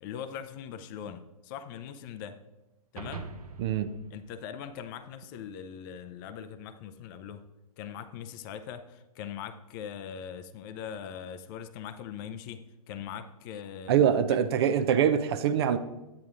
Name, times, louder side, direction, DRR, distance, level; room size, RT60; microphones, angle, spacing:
voice 1, 0.0-2.4 2.9-3.3 4.1-7.4 7.8-14.1, left 8 dB, 35° left, 11 dB, 0.5 m, -41 dB
sound 1, 3.0-5.4, right 4 dB, 80° right, 0.9 m, -44 dB
voice 2, 3.6-3.9 13.9-15.8, right 8 dB, 45° right, 11 dB, 0.5 m, -24 dB
10.5 x 9.5 x 2.5 m, 1.0 s
figure-of-eight pair, 115°, 19 cm